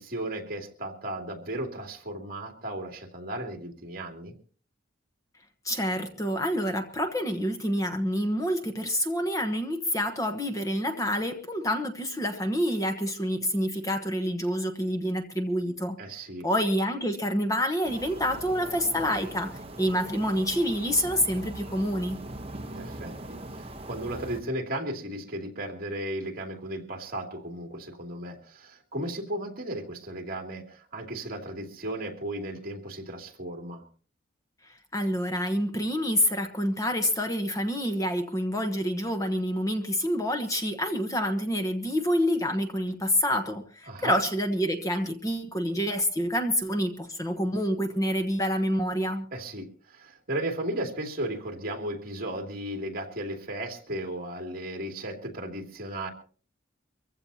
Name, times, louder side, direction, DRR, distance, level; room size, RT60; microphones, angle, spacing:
voice 1, 0.0-4.3 16.0-16.4 22.7-33.8 43.9-44.2 49.3-56.1, right 1 dB, 45° right, 3 dB, 2.8 m, -35 dB
voice 2, 5.6-16.0 16.4-22.2 34.7-49.2, equal, 15° left, 5 dB, 1.1 m, -27 dB
sound 1, 17.8-24.4, right 1 dB, 30° right, 1.0 m, -41 dB
24.5 x 15.5 x 2.9 m, 0.40 s
head